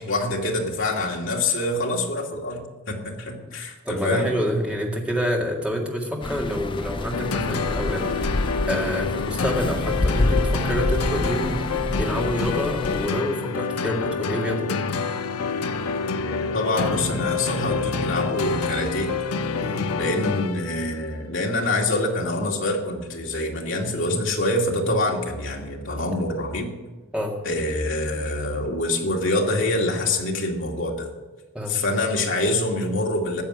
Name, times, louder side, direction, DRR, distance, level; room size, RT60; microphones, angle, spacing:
voice 1, 0.0-4.3 16.2-19.1 19.9-26.7 27.4-31.1 31.7-33.4, left 2 dB, 55° left, 0 dB, 2.2 m, -25 dB
voice 2, 3.8-8.4 8.7-14.8 19.6-19.9 27.1-27.3 31.5-31.8, equal, 5° right, -1 dB, 2.0 m, -28 dB
sound 1, 6.2-13.1, left 2 dB, 20° left, 0.4 m, -27 dB
sound 2, 7.1-20.9, left 4 dB, 90° left, 0.8 m, -27 dB
14.0 x 7.2 x 9.7 m, 1.2 s
head